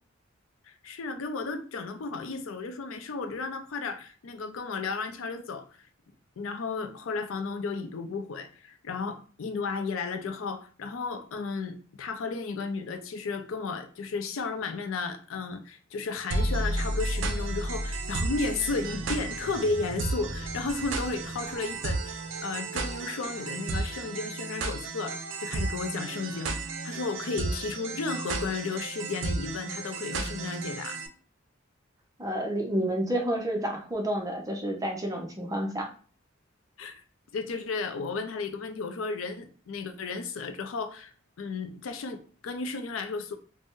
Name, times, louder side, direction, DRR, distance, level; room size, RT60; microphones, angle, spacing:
voice 1, 0.7-5.6 6.4-26.6 26.8-31.0 36.8-37.0 37.3-41.1 41.4-43.3, left 4 dB, 85° left, 0.4 m, -34 dB
sound 1, 16.3-31.1, right 2 dB, 70° right, 0.5 m, -33 dB
sound 2, 18.6-23.5, right 1 dB, 35° left, 1.0 m, -45 dB
voice 2, 32.2-35.9, right 1 dB, 15° right, 0.5 m, -30 dB
2.6 x 2.0 x 3.5 m
head